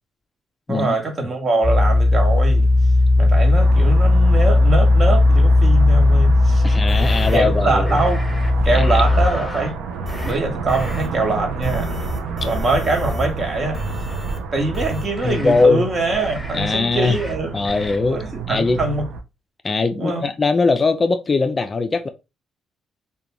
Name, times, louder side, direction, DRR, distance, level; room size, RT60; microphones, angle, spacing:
voice 1, 0.7-2.7 3.2-6.8 7.3-8.2 8.6-9.8 10.2-11.9 12.4-13.8 14.5-17.6 18.1-19.1 20.0-20.3, right 2 dB, 40° right, 0.8 m, -23 dB
sound 1, 1.6-9.3, left 2 dB, 15° right, 0.6 m, -15 dB
sound 2, 3.6-19.2, right 5 dB, 90° right, 0.4 m, -30 dB
voice 2, 6.6-8.0 8.7-9.0 15.2-15.9 16.5-17.2 17.5-18.8 19.6-22.1, left 3 dB, 35° left, 0.3 m, -20 dB
sound 3, 6.9-7.4 7.9-8.5 8.8-9.7 10.1-10.4 10.7-11.1 11.6-13.3 13.7-14.4 14.7-15.6 16.1-16.8 17.0-17.3 17.7-18.0, left 2 dB, 10° left, 0.9 m, -31 dB
2.5 x 2.2 x 2.9 m
cardioid pair, 90°, 0 cm